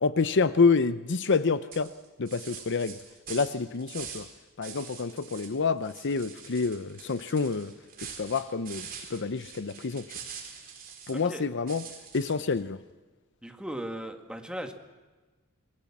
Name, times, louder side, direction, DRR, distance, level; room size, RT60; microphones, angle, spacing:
voice 1, 0.0-1.9 2.2-3.0 3.3-4.3 4.6-7.7 8.0-10.1 11.1-11.9 12.1-12.8, left 4 dB, 55° left, 14 dB, 0.7 m, -27 dB
sound 1, 1.2-1.4 1.7-4.3 4.6-5.5 5.8-11.3 11.7-12.6, right 7 dB, 45° right, 4.3 m, -44 dB
voice 2, 11.1-11.4 13.4-14.7, right 1 dB, 5° right, 5 dB, 1.9 m, -37 dB
27.5 x 20.5 x 7.3 m, 1.3 s
head